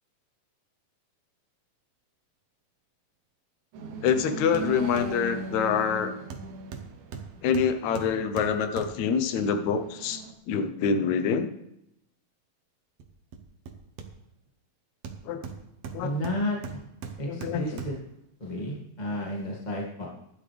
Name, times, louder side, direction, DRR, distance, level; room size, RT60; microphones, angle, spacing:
sound 1, 3.7-10.3, right 3 dB, 85° right, 3.2 m, -40 dB
voice 1, 4.0-6.2 7.4-11.5 15.3-15.4 15.9-16.1 17.3-17.8, left 6 dB, 70° left, 9 dB, 1.9 m, -26 dB
Hammer, 4.1-4.3 4.5-5.2 6.3-9.2 13.0-14.5 15.0-18.1 18.6-18.7, right 6 dB, 65° right, 1.5 m, -41 dB
voice 2, 16.0-16.8 17.2-17.9 18.4-20.1, left 1 dB, 15° left, -3 dB, 1.5 m, -32 dB
15.5 x 11.5 x 3.5 m, 0.78 s
omnidirectional pair, 4.3 m